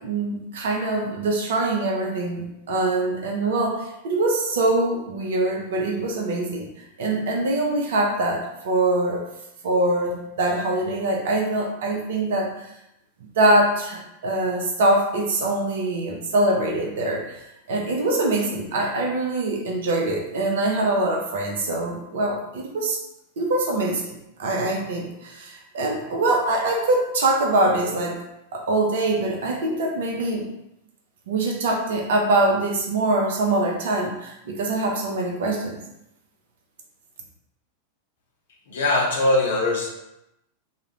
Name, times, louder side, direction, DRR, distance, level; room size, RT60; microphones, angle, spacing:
voice 1, 0.0-6.7 7.0-8.4 8.6-9.2 9.6-12.7 13.4-17.4 17.7-23.0 23.4-24.1 24.4-28.1 28.5-30.5 31.3-35.8, right 2 dB, 60° right, 0 dB, 0.5 m, -23 dB
voice 2, 38.7-39.9, left 2 dB, 60° left, -1 dB, 0.6 m, -21 dB
2.3 x 2.0 x 2.9 m, 0.86 s
figure-of-eight pair, 90°, 0 cm